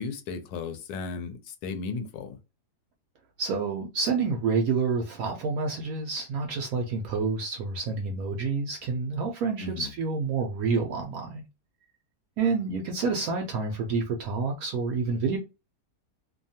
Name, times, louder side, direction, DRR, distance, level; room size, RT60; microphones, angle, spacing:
voice 1, 0.0-2.4 9.6-9.9, left 4 dB, 80° left, 1.1 m, -35 dB
voice 2, 3.4-11.4 12.4-15.4, right 4 dB, 70° right, 0.9 m, -28 dB
2.7 x 2.2 x 2.7 m
omnidirectional pair, 1.7 m